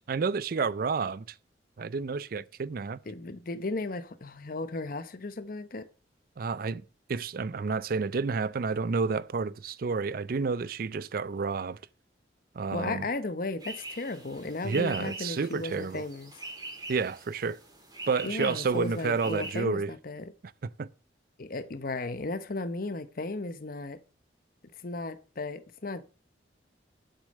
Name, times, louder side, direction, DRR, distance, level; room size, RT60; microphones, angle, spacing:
voice 1, 0.1-1.3 1.8-3.0 6.4-6.8 7.1-11.8 12.5-13.1 14.6-16.0 16.9-17.6 18.1-19.9 20.8-20.9, right 4 dB, 55° right, 0.4 m, -30 dB
voice 2, 3.1-5.9 12.7-16.3 18.2-20.3 21.4-24.0 24.8-26.0, left 2 dB, 50° left, 0.8 m, -35 dB
sound 1, 13.6-19.6, right 2 dB, 20° right, 2.4 m, -44 dB
8.3 x 6.5 x 6.5 m
head